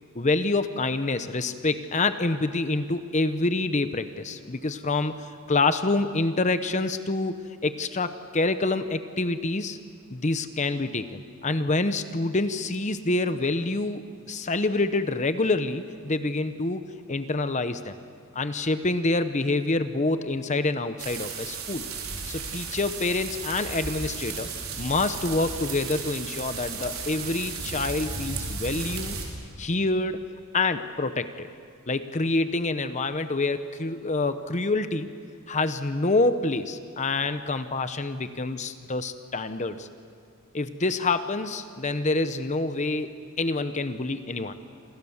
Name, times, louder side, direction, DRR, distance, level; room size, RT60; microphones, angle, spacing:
voice 1, 0.1-7.4 7.6-9.8 10.1-16.8 17.1-18.0 18.3-21.8 22.3-24.5 24.8-29.2 29.6-30.2 30.5-31.5 31.9-35.1 35.5-39.9 40.5-44.5, left 2 dB, 30° left, 10 dB, 0.9 m, -27 dB
sound 1, 21.0-29.3, right 5 dB, 65° right, 4.7 m, -34 dB
29.0 x 27.0 x 7.2 m, 2.2 s
head